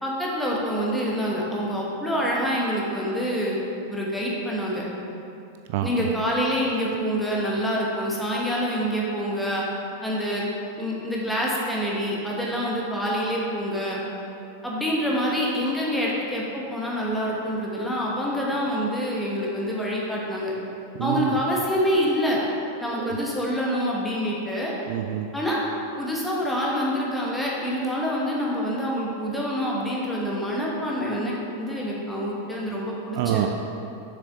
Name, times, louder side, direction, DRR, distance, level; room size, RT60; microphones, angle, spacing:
voice 1, 0.0-3.6 3.9-4.8 5.8-9.6 10.0-10.4 10.8-14.0 14.6-20.5 21.0-22.4 22.8-24.7 25.3-25.6 26.0-33.5, equal, 5° left, -5 dB, 1.4 m, -26 dB
voice 2, 21.0-21.4 23.0-23.1 24.9-25.3 33.1-33.5, right 12 dB, 50° right, 4 dB, 0.4 m, -26 dB
6.6 x 6.6 x 3.6 m, 2.7 s
figure-of-eight pair, 90°, 0 cm